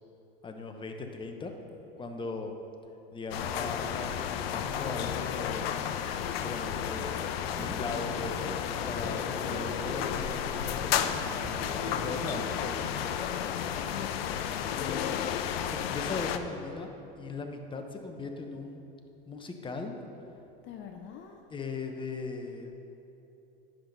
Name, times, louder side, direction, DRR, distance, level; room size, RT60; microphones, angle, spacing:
voice 1, 0.4-1.5 2.0-2.5 3.1-5.9 6.4-7.1 7.6-11.3 12.0-13.1 14.8-15.0 15.7-16.9 17.2-18.8 19.3-19.9 21.5-22.8, left 3 dB, 15° left, 4 dB, 1.0 m, -39 dB
sound 1, 3.3-16.4, left 9 dB, 80° left, 0.6 m, -32 dB
sound 2, 5.5-12.6, right 2 dB, 25° right, 1.7 m, -45 dB
voice 2, 7.2-7.8 8.8-9.0 12.3-13.0 13.2-13.5 20.6-21.4, left 8 dB, 40° left, 4 dB, 0.7 m, -47 dB
10.5 x 5.9 x 5.3 m, 2.9 s
hypercardioid pair, 100°, 30 cm